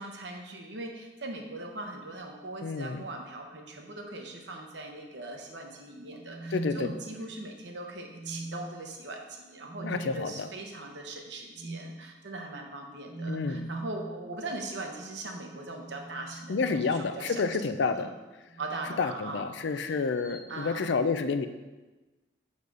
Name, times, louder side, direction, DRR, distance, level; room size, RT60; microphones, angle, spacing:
voice 1, 0.0-17.4 17.9-18.1 18.6-20.0 20.5-21.0, right 2 dB, 70° right, 2 dB, 0.9 m, -40 dB
voice 2, 2.6-3.0 6.5-6.9 9.8-10.5 13.3-13.7 16.5-18.1 19.0-21.5, left 4 dB, 75° left, 10 dB, 0.4 m, -29 dB
sound 1, 6.1-7.5 8.1-8.9 9.7-10.1 11.6-11.9 13.1-14.1 15.6-17.4 18.5-19.0 20.2-20.5, right 2 dB, 30° left, 1.4 m, -41 dB
6.7 x 4.1 x 4.8 m, 1.2 s
head